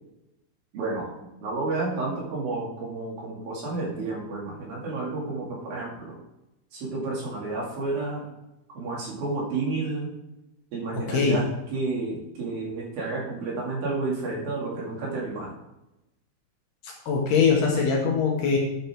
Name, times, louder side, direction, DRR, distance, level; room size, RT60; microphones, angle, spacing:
voice 1, 0.7-1.1 1.4-6.2 6.7-8.3 8.8-10.1 10.7-15.5, right 3 dB, 55° right, -4 dB, 3.8 m, -31 dB
voice 2, 10.9-11.4 16.8-18.6, left 5 dB, 65° left, -1 dB, 2.9 m, -22 dB
9.9 x 8.8 x 3.6 m, 0.90 s
omnidirectional pair, 5.5 m